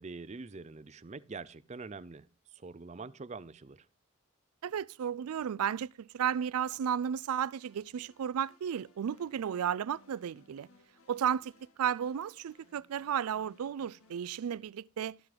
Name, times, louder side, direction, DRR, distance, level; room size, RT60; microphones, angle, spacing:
voice 1, 0.0-2.3 2.5-3.8, right 4 dB, 30° right, 0.5 m, -45 dB
voice 2, 4.6-10.7 11.1-11.5 11.8-15.2, right 8 dB, 90° right, 0.4 m, -33 dB
sound 1, 7.5-14.4, left 2 dB, 85° left, 1.9 m, -65 dB
13.5 x 5.9 x 5.0 m
head